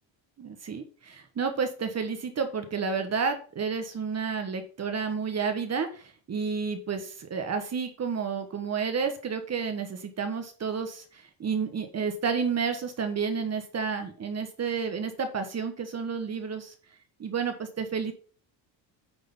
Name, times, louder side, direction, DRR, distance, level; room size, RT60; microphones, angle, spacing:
voice 1, 0.4-16.7 17.2-18.1, right 5 dB, 35° right, 6 dB, 1.3 m, -31 dB
9.0 x 3.8 x 5.6 m, 0.42 s
cardioid pair, 100°, 46 cm